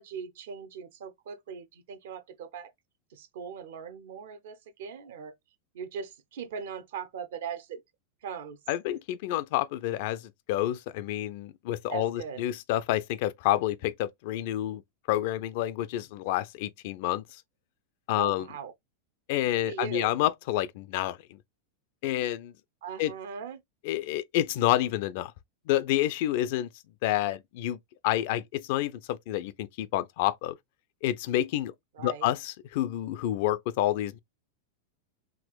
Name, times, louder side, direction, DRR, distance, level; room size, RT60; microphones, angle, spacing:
voice 1, 0.0-2.7 3.1-5.3 5.7-7.8 8.2-8.6 11.9-12.4 18.2-18.7 19.5-20.1 22.8-23.6 31.9-32.3, right 7 dB, 55° right, 0.6 m, -39 dB
voice 2, 8.7-14.8 15.1-17.2 18.1-18.5 19.3-21.4 22.0-22.5 23.0-23.1 23.8-25.3 25.7-26.7 27.0-27.8 28.0-30.5 31.0-31.7 32.0-34.2, left 13 dB, 50° left, 0.4 m, -29 dB
5.0 x 2.9 x 2.3 m
figure-of-eight pair, 90°, 0 cm